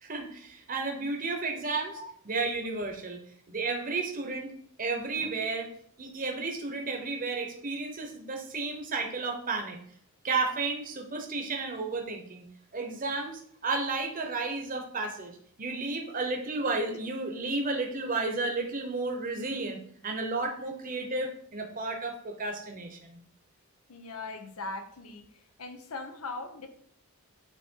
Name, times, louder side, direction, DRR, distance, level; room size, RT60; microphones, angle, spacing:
voice 1, 0.0-2.0 2.2-3.2 3.5-4.5 4.8-5.7 6.0-9.8 10.2-12.5 12.7-23.2, right 3 dB, 40° right, 3 dB, 0.9 m, -32 dB
voice 2, 23.9-25.2 25.6-26.7, left 3 dB, 85° left, 7 dB, 0.9 m, -39 dB
8.3 x 3.0 x 4.5 m, 0.62 s
head